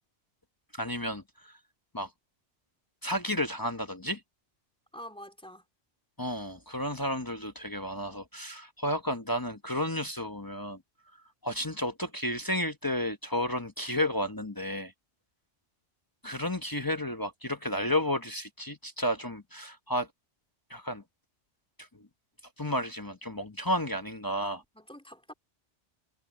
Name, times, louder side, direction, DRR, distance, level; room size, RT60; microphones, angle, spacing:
voice 1, 0.7-1.6 1.9-2.1 3.0-4.2 6.2-10.8 11.4-14.9 16.2-20.1 20.7-21.0 21.8-22.1 22.6-24.6, left 1 dB, 20° left, 0.8 m, -32 dB
voice 2, 4.9-5.7 24.7-25.3, equal, 5° left, 2.9 m, -46 dB
omnidirectional pair, 1.2 m